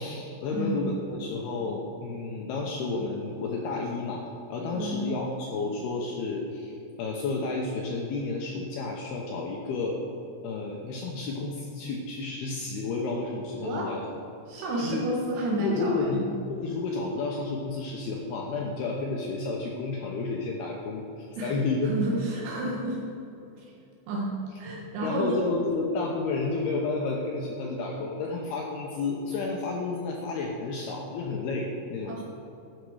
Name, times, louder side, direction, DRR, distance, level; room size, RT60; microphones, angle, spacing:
voice 1, 0.0-4.2 4.5-10.0 10.4-14.1 14.8-15.0 15.6-16.2 16.5-22.0 25.0-32.2, left 3 dB, 90° left, -1 dB, 2.2 m, -31 dB
voice 2, 4.7-5.1 13.6-13.9 14.5-16.3 21.4-21.5 21.8-23.0 23.6-23.7 24.1-24.3 24.6-25.4 32.1-32.2, right 1 dB, 80° right, -4 dB, 4.1 m, -30 dB
13.0 x 9.2 x 4.9 m, 3.0 s
omnidirectional pair, 5.9 m